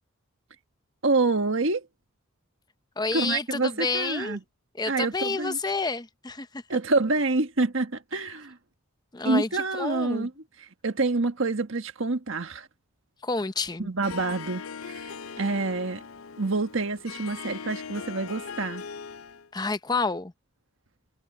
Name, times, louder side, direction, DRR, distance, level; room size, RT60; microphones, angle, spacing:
voice 1, 1.0-1.9 3.1-4.4 4.9-5.6 6.7-8.6 9.2-10.3 10.6-12.7 13.8-16.0 16.4-18.8, right 3 dB, 65° right, 1.5 m, -27 dB
voice 2, 3.0-4.4 4.8-6.6 9.1-10.3 13.2-13.9 19.5-20.3, left 3 dB, 20° left, 0.7 m, -29 dB
Harp, 14.0-19.5, left 6 dB, 90° left, 0.6 m, -40 dB
head